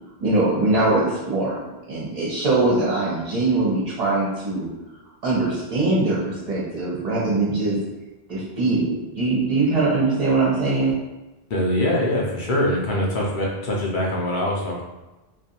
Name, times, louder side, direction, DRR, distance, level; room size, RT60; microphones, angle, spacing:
voice 1, 0.2-1.6 1.9-4.7 5.2-7.8 8.3-10.9, right 2 dB, 40° right, -7 dB, 1.0 m, -22 dB
voice 2, 11.5-14.8, left 1 dB, 60° left, -3 dB, 0.7 m, -23 dB
2.4 x 2.3 x 2.8 m, 1.1 s
omnidirectional pair, 1.1 m